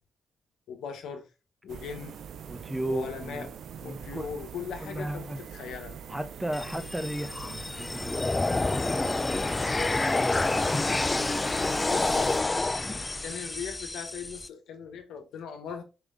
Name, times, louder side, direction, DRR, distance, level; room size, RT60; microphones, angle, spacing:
voice 1, 0.7-1.3 1.6-2.2 2.9-3.5 3.8-6.0 11.9-12.3 13.2-15.8, left 7 dB, 80° left, 1.0 m, -39 dB
sound 1, 1.7-12.4, right 8 dB, 70° right, 0.4 m, -44 dB
voice 2, 2.5-3.5 3.8-4.4 4.8-5.4 6.1-11.0 12.8-13.1, right 1 dB, 10° right, 0.8 m, -37 dB
sound 2, 6.5-14.5, left 2 dB, 25° left, 0.4 m, -28 dB
5.0 x 3.4 x 2.4 m
supercardioid pair, 50°, 0 cm